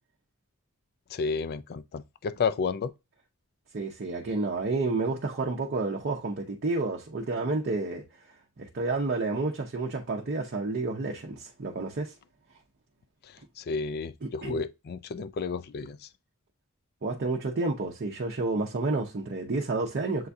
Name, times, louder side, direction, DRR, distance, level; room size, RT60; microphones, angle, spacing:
voice 1, 1.1-2.9 13.6-16.0, left 5 dB, 45° left, 0.4 m, -31 dB
voice 2, 3.7-12.1 14.2-14.6 17.0-20.3, right 3 dB, 50° right, 0.6 m, -30 dB
7.6 x 2.6 x 2.3 m
head